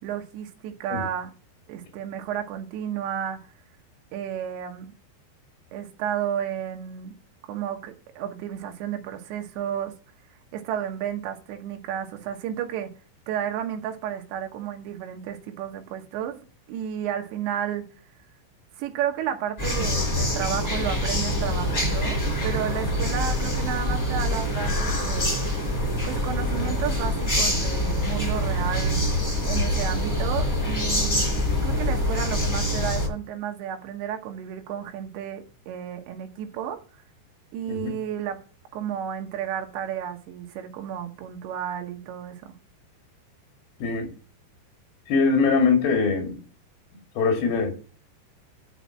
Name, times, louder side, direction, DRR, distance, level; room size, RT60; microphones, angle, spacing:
voice 1, 0.0-1.3 1.7-3.4 4.1-4.9 5.7-7.1 7.4-9.9 10.5-12.9 13.3-17.8 18.8-25.4 26.0-29.0 29.4-31.2 31.6-36.8 37.5-38.4 38.7-42.5, right 9 dB, 80° right, 3.4 m, -32 dB
sound 1, 19.6-33.1, left 1 dB, 15° left, 4.8 m, -25 dB
voice 2, 43.8-44.1 45.1-46.4 47.2-47.7, left 4 dB, 75° left, 4.5 m, -22 dB
9.4 x 5.9 x 7.1 m
omnidirectional pair, 5.1 m